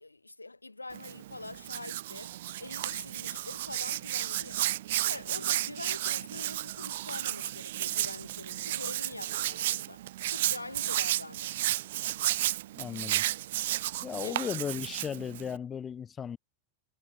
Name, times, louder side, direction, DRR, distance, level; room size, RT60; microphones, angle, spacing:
voice 1, 0.0-2.3 2.6-10.0 10.3-11.5 14.2-14.4, left 2 dB, 80° left, 1.0 m, -44 dB
Hands, 0.9-15.6, right 14 dB, 55° right, 0.5 m, -33 dB
voice 2, 12.8-13.2 14.0-16.4, left 7 dB, 20° left, 1.0 m, -36 dB
figure-of-eight pair, 90°, 0 cm